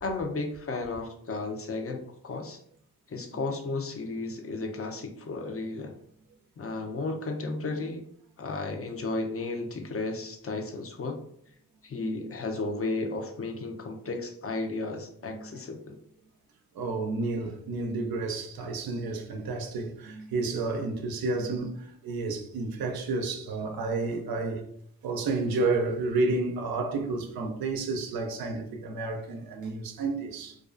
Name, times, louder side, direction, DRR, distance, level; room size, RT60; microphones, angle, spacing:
voice 1, 0.0-2.6 3.1-5.9 6.6-8.0 8.4-11.2 11.8-16.0, left 3 dB, 40° left, 0.6 m, -33 dB
voice 2, 16.7-24.6 25.0-30.6, right 3 dB, 85° right, 0.5 m, -30 dB
2.4 x 2.3 x 2.4 m
cardioid pair, 45°, 35 cm